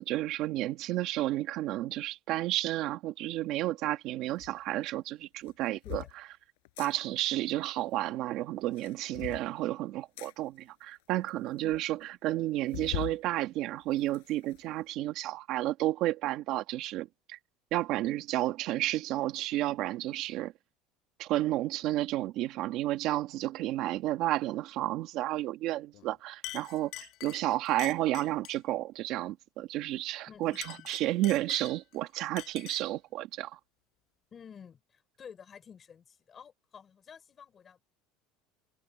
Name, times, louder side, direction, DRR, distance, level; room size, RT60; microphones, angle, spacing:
voice 1, 0.0-6.0 6.8-17.4 17.7-20.5 21.2-33.6, right 15 dB, 45° right, 1.8 m, -31 dB
sound 1, 4.4-4.5 5.4-6.1 6.6-6.9 8.6-9.5 10.2-10.3 11.0-11.1 11.3-11.4 11.7-11.8 12.7-13.2 13.6-14.6, left 24 dB, 85° left, 7.8 m, -40 dB
Chink clink, 25.9-26.1 26.4-28.7 30.4-32.0 32.4-33.0, left 17 dB, 45° left, 6.4 m, -45 dB
voice 2, 30.3-30.9 34.3-37.8, left 7 dB, 20° left, 6.4 m, -51 dB
cardioid pair, 175°, 0 cm